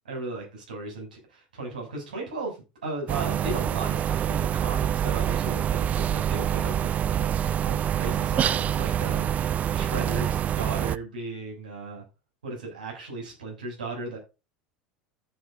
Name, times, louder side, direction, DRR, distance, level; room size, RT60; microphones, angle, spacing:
voice 1, 0.1-2.6 2.8-9.3 9.7-12.0 12.4-14.2, right 3 dB, 85° right, 0 dB, 7.3 m, -36 dB
sound 1, 3.1-11.0, right 10 dB, 35° right, 0.5 m, -26 dB
14.5 x 8.7 x 2.7 m, 0.28 s
hypercardioid pair, 80°, 4 cm